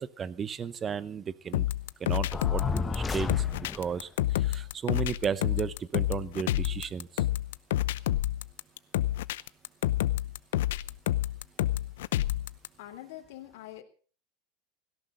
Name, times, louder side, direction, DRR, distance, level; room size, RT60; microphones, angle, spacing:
voice 1, 0.0-1.7 2.0-3.4 3.7-7.2, right 7 dB, 20° right, 17 dB, 0.8 m, -34 dB
sound 1, 1.5-12.7, left 14 dB, 85° left, 0.7 m, -29 dB
sound 2, 2.3-4.0, left 4 dB, 15° left, 1.0 m, -32 dB
voice 2, 12.8-13.8, left 14 dB, 70° left, 3 dB, 3.2 m, -44 dB
17.5 x 17.0 x 3.9 m, 0.40 s
supercardioid pair, 155°, 0 cm